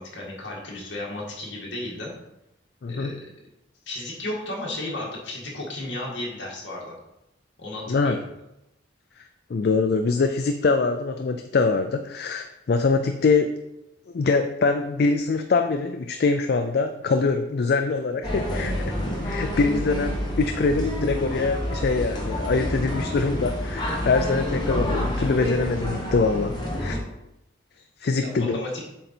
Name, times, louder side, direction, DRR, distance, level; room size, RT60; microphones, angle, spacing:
voice 1, 0.0-2.1 2.8-3.2 3.9-7.0 7.6-8.2 25.2-25.3 28.2-28.8, left 1 dB, 70° left, -3 dB, 2.0 m, -34 dB
voice 2, 2.8-3.2 7.9-8.2 9.2-13.5 14.1-18.9 19.2-27.0 28.0-28.6, left 4 dB, 55° left, 7 dB, 0.4 m, -24 dB
sound 1, 18.2-27.0, left 1 dB, 20° left, 1.1 m, -28 dB
7.4 x 4.0 x 4.3 m, 0.88 s
head